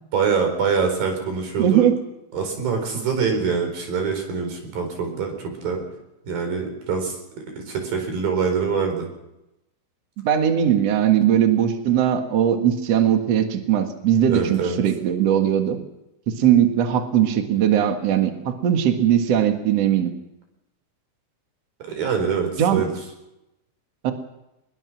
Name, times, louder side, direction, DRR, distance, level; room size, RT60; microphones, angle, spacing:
voice 1, 0.1-1.9 2.3-5.8 6.3-7.2 7.6-9.1 14.3-14.8 21.9-22.9, right 5 dB, 50° right, 5 dB, 5.7 m, -24 dB
voice 2, 1.6-1.9 10.2-15.8 16.3-20.1 22.6-22.8 24.0-24.1, right 10 dB, 75° right, 6 dB, 1.5 m, -19 dB
23.0 x 21.0 x 6.1 m, 0.90 s
omnidirectional pair, 5.7 m